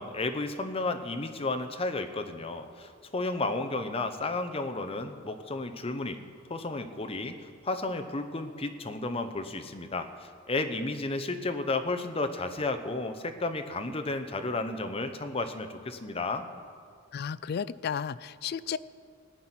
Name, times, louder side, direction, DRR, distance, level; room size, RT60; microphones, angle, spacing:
voice 1, 0.0-6.2 6.5-7.3 7.6-16.4, left 2 dB, 30° left, 7 dB, 0.8 m, -32 dB
voice 2, 17.1-18.8, left 7 dB, 55° left, 18 dB, 0.3 m, -33 dB
16.0 x 5.9 x 9.6 m, 2.2 s
head